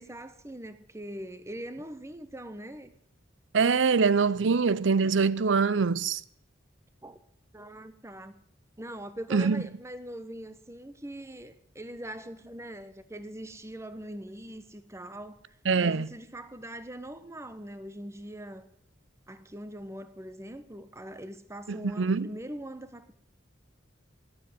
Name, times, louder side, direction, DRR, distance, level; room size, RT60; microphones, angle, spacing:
voice 1, 0.0-2.9 4.5-4.6 7.0-7.2 7.5-8.3 8.8-18.7 19.3-23.1, right 1 dB, 15° right, 1.1 m, -42 dB
voice 2, 3.5-6.2 9.3-9.6 15.7-16.1 21.7-22.3, right 5 dB, 75° right, 0.6 m, -24 dB
17.0 x 7.8 x 9.8 m
head